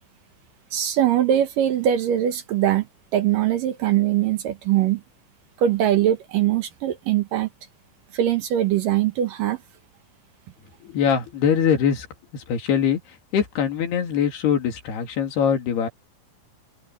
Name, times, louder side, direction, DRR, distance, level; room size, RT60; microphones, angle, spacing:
voice 1, 0.7-2.9 3.1-5.0 5.6-7.5 8.1-9.6, right 11 dB, 70° right, 2.4 m, -21 dB
voice 2, 10.8-12.1 12.3-13.0 13.3-15.9, left 8 dB, 75° left, 4.7 m, -22 dB
open air
omnidirectional pair, 4.7 m